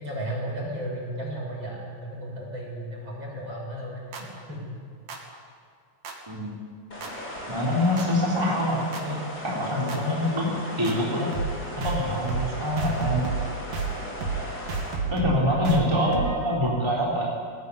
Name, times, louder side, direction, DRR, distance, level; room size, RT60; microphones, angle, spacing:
voice 1, 0.0-4.8 15.3-15.7, right 1 dB, 30° right, -2 dB, 7.4 m, -34 dB
sound 1, 4.1-4.2 5.1-5.2 6.0-6.1 7.0-7.1 8.0-8.1 8.9-9.0 9.9-10.0 10.8-10.9 11.3-11.5 11.8-12.0 12.3-12.5 12.8-13.5 13.7-13.9 14.2-14.4 14.7-16.5, right 5 dB, 70° right, 4.2 m, -30 dB
voice 2, 6.3-6.6 7.5-9.2 9.4-10.5 10.8-11.4 11.8-13.4 15.1-17.2, left 1 dB, 5° right, -5 dB, 3.4 m, -25 dB
sound 2, 6.9-15.0, left 1 dB, 25° left, 5.1 m, -37 dB
22.0 x 18.5 x 9.8 m, 2.2 s
omnidirectional pair, 4.0 m